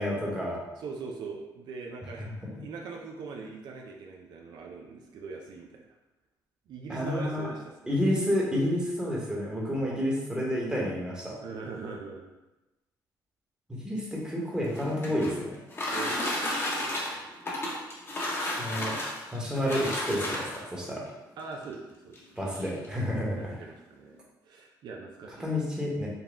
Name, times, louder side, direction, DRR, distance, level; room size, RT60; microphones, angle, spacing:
voice 1, 0.0-0.6 2.2-2.3 6.9-7.5 7.9-11.3 13.7-15.5 18.6-19.0 19.3-21.0 22.4-23.5 25.4-26.1, left 1 dB, 10° right, -4 dB, 1.1 m, -30 dB
voice 2, 0.8-2.3 2.6-5.9 6.7-7.9 9.7-10.0 11.4-12.3 15.9-16.5 16.8-17.2 17.8-18.1 21.4-22.2 22.4-23.1 23.4-25.7, right 4 dB, 75° right, 0 dB, 0.5 m, -42 dB
sound 1, 14.5-20.8 21.6-21.7 22.1-22.2 22.5-22.9, left 1 dB, 35° left, 0.9 m, -32 dB
4.0 x 2.2 x 3.5 m, 1.0 s
cardioid pair, 90°, 7 cm